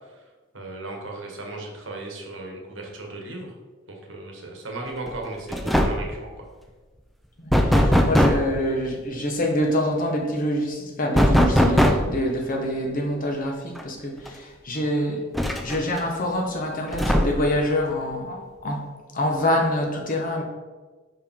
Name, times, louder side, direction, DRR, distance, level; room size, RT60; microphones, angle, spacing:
voice 1, 0.5-3.6 3.9-6.4, right 2 dB, 70° right, 1 dB, 1.2 m, -36 dB
sound 1, 5.1-5.3 5.5-6.2 7.5-8.5 11.1-12.2 13.8-13.9 14.3-14.4 15.3-16.0 16.9-17.6, equal, ahead, 0.4 m, -19 dB
voice 2, 7.4-15.2 15.6-18.8 19.1-20.4, left 1 dB, 45° left, 1 dB, 1.0 m, -26 dB
5.5 x 4.8 x 3.6 m, 1.3 s
head